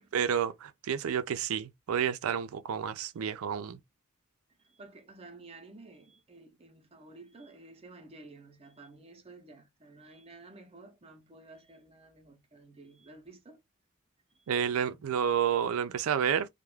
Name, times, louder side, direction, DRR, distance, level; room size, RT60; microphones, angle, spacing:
voice 1, 0.1-3.8 14.5-16.5, right 8 dB, 80° right, 0.4 m, -30 dB
voice 2, 4.6-13.6 14.3-14.5 14.9-15.0, right 2 dB, 30° right, 0.5 m, -52 dB
2.3 x 2.1 x 3.1 m
head